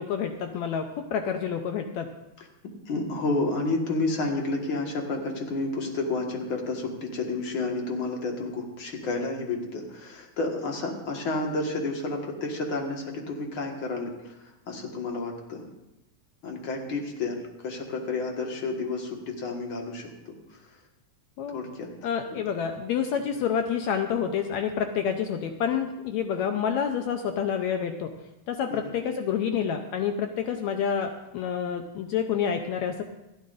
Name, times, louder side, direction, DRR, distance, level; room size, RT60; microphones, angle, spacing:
voice 1, 0.0-2.1 21.4-21.6 22.0-28.1 28.5-33.0, left 7 dB, 75° left, 5 dB, 1.8 m, -28 dB
voice 2, 2.9-15.7 16.4-20.8 21.5-21.9 22.3-22.4 23.1-23.2 28.7-28.9, left 3 dB, 45° left, 1 dB, 2.1 m, -31 dB
28.0 x 9.4 x 2.6 m, 0.92 s
omnidirectional pair, 3.6 m